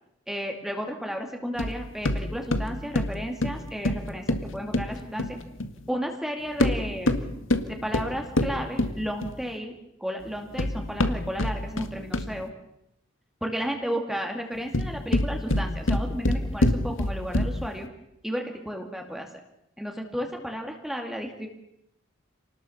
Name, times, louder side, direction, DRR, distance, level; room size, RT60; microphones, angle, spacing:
voice 1, 0.3-5.4 5.9-7.2 7.7-9.7 10.0-12.5 13.4-17.9 18.2-19.3 19.8-21.5, equal, ahead, 2 dB, 2.4 m, -33 dB
sound 1, 1.6-5.8 6.5-9.5 10.3-12.5 14.5-17.8, left 1 dB, 80° left, 2.0 m, -27 dB
28.5 x 19.5 x 7.2 m, 0.80 s
head